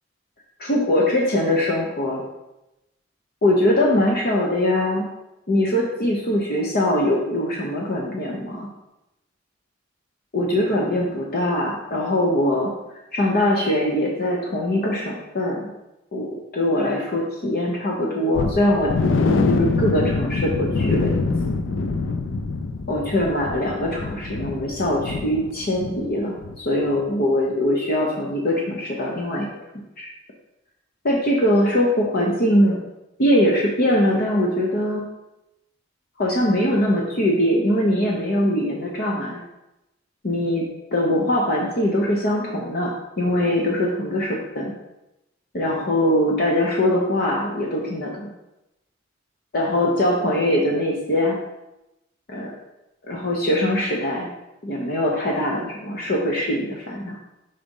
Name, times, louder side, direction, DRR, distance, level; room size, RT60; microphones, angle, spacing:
voice 1, 0.6-2.2 3.4-5.1 5.5-8.7 10.3-12.7 13.1-15.7 16.1-18.9 19.2-21.2 22.9-29.5 30.0-30.1 31.0-32.8 33.2-35.0 36.2-39.4 40.2-40.6 40.9-44.7 45.5-48.3 49.5-51.4 52.3-52.5 53.1-54.3 54.6-57.2, left 1 dB, 50° left, -1 dB, 0.9 m, -22 dB
sound 1, 18.3-26.1 26.4-26.6 27.0-27.1, left 3 dB, 75° left, 0.5 m, -24 dB
5.1 x 4.2 x 5.3 m, 0.92 s
head